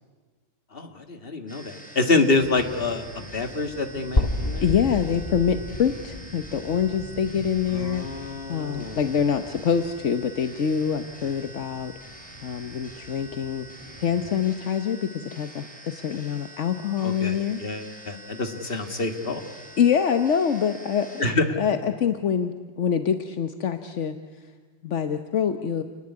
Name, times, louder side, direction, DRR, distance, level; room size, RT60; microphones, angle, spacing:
voice 1, 0.7-4.7 7.7-9.0 17.0-19.5 21.2-21.4, left 3 dB, 50° left, 7 dB, 2.2 m, -27 dB
sound 1, 1.5-21.3, right 1 dB, 5° left, 4.3 m, -46 dB
sound 2, 2.3-14.3, equal, 25° right, 3.1 m, -45 dB
sound 3, 4.2-8.1, left 1 dB, 30° left, 1.8 m, -30 dB
voice 2, 4.6-11.9 12.4-13.7 14.0-17.6 19.8-21.2 21.6-24.2 24.8-25.8, left 7 dB, 75° left, 8 dB, 1.4 m, -25 dB
29.0 x 19.0 x 9.8 m, 1.4 s
omnidirectional pair, 1.2 m